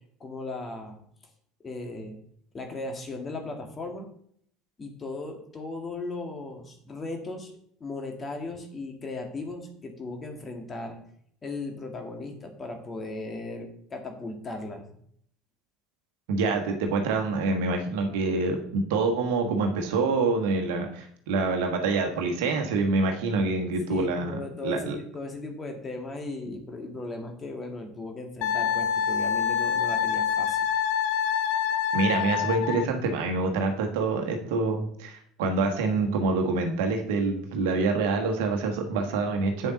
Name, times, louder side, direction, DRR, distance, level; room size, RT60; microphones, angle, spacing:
voice 1, 0.2-1.0 1.6-2.2 2.5-4.1 4.8-7.5 7.8-11.0 11.4-14.9 23.9-30.7, left 2 dB, 25° left, 3 dB, 2.1 m, -37 dB
voice 2, 16.3-25.0 31.9-39.7, right 3 dB, 60° right, 3 dB, 1.4 m, -26 dB
Wind instrument woodwind instrument, 28.4-32.9, left 8 dB, 55° left, 0.8 m, -26 dB
8.7 x 7.1 x 4.1 m, 0.64 s
figure-of-eight pair, 65°, 0 cm